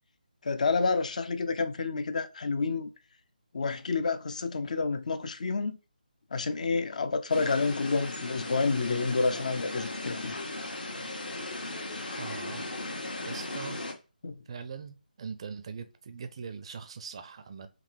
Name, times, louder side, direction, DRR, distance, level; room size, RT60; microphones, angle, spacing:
voice 1, 0.4-2.9 3.5-5.8 6.3-10.3 14.2-14.4, left 4 dB, 50° left, 0.5 m, -29 dB
sound 1, 7.3-13.9, left 2 dB, 75° left, 1.6 m, -37 dB
voice 2, 12.2-12.8 13.2-13.8 14.5-17.7, right 5 dB, 35° right, 0.5 m, -41 dB
5.1 x 2.8 x 3.3 m
figure-of-eight pair, 155°, 5 cm